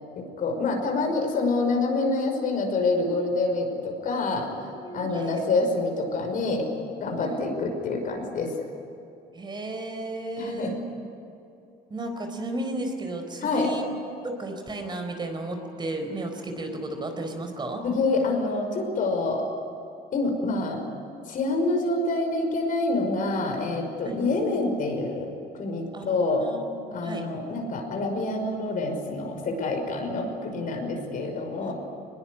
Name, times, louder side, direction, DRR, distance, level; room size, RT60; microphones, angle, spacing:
voice 1, 0.2-4.5 4.9-6.7 7.0-8.5 10.4-10.7 13.4-13.7 17.8-19.4 20.1-20.8 21.3-25.3 25.6-26.4 26.9-31.7, left 3 dB, 55° left, 3 dB, 5.8 m, -27 dB
voice 2, 4.6-5.5 7.2-7.4 9.3-10.8 11.9-13.9 14.2-17.8 24.0-24.2 25.9-27.3 31.6-31.7, right 1 dB, 25° right, 5 dB, 4.4 m, -34 dB
22.0 x 21.0 x 10.0 m, 2.8 s
cardioid pair, 110°, 17 cm